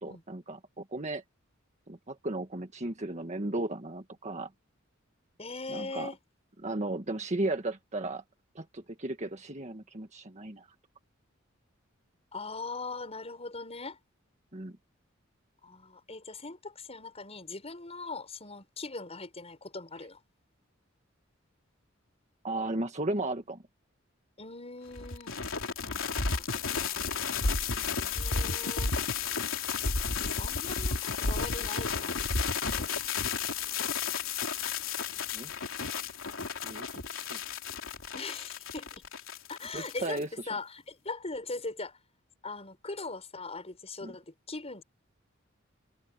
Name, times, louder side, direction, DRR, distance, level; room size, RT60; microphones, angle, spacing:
voice 1, 0.0-1.2 1.9-4.5 5.7-6.1 6.6-8.2 8.5-10.7 14.5-14.8 22.4-23.6 35.3-35.5 36.6-37.4 39.7-40.3 44.0-44.1, right 2 dB, 35° right, 1.7 m, -35 dB
voice 2, 5.4-6.2 12.3-14.0 15.6-20.2 24.4-25.4 25.8-26.4 26.8-27.0 28.0-28.9 30.2-33.1 38.1-39.0 39.5-40.2 40.5-42.0 42.4-44.8, left 3 dB, 30° left, 6.8 m, -41 dB
sound 1, 24.9-40.2, left 5 dB, 90° left, 3.0 m, -32 dB
head